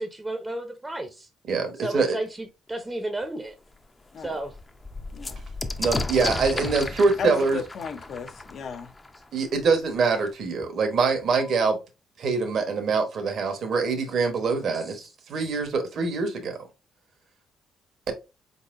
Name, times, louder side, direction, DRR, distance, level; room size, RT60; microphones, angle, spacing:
voice 1, 0.0-1.3 1.8-3.5 4.2-4.6 14.7-15.1, right 2 dB, 15° right, 0.6 m, -32 dB
voice 2, 1.5-2.2 5.8-7.6 9.3-11.8 12.2-16.6, right 4 dB, 65° right, 1.1 m, -24 dB
sound 1, 3.2-3.3 3.7-3.8 4.1-9.7 10.6-10.7 11.0-11.6, left 2 dB, 20° left, 0.5 m, -34 dB
voice 3, 7.2-8.9, left 6 dB, 60° left, 0.6 m, -34 dB
4.4 x 4.0 x 2.5 m
cardioid pair, 90°, 0 cm